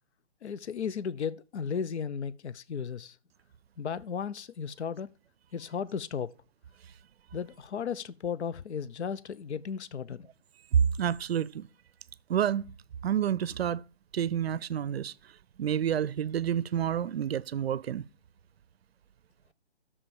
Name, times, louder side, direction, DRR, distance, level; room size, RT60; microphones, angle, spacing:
voice 1, 0.4-3.2 3.8-5.1 5.5-6.3 7.3-10.3, left 7 dB, 85° left, 0.6 m, -35 dB
voice 2, 10.7-11.7 12.3-12.7 13.0-13.8 14.1-15.1 15.6-18.0, right 9 dB, 70° right, 0.5 m, -28 dB
6.7 x 5.6 x 7.0 m
hypercardioid pair, 160°, 33 cm